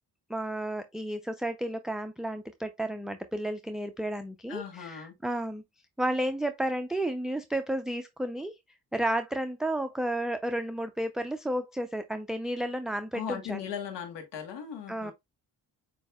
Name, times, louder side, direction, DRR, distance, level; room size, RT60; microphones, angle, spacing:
voice 1, 0.3-5.6 6.0-8.5 8.9-13.6 14.9-15.1, right 1 dB, ahead, 0.4 m, -32 dB
voice 2, 4.5-5.1 13.1-15.1, left 8 dB, 80° left, 1.3 m, -38 dB
6.9 x 2.8 x 2.3 m
supercardioid pair, 60°, 42 cm